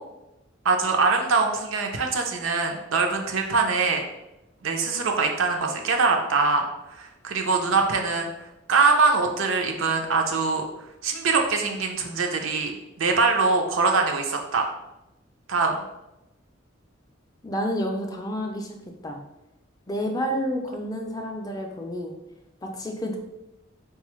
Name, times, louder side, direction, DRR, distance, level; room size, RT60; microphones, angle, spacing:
voice 1, 0.6-4.0 4.6-6.7 7.0-8.3 8.7-10.6 11.0-12.7 13.0-14.7 15.5-15.8, right 4 dB, 90° right, 2 dB, 0.5 m, -23 dB
voice 2, 17.4-18.7 19.0-19.2 19.9-22.1 22.6-23.2, equal, 20° left, 2 dB, 0.4 m, -29 dB
4.0 x 2.3 x 3.0 m, 0.94 s
head